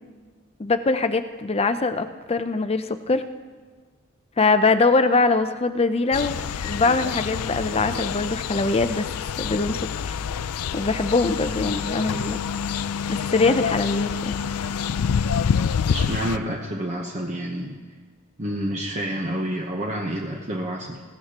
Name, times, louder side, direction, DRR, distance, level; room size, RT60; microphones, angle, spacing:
voice 1, 0.6-3.2 4.4-9.1 9.4-10.2 10.7-12.4 13.1-14.3, left 3 dB, 25° left, 10 dB, 0.6 m, -22 dB
sound 1, 6.1-16.4, left 7 dB, 85° left, 0.4 m, -27 dB
voice 2, 15.9-17.8 18.4-21.0, right 1 dB, 30° right, 0 dB, 1.0 m, -29 dB
20.0 x 16.0 x 3.0 m, 1.5 s
head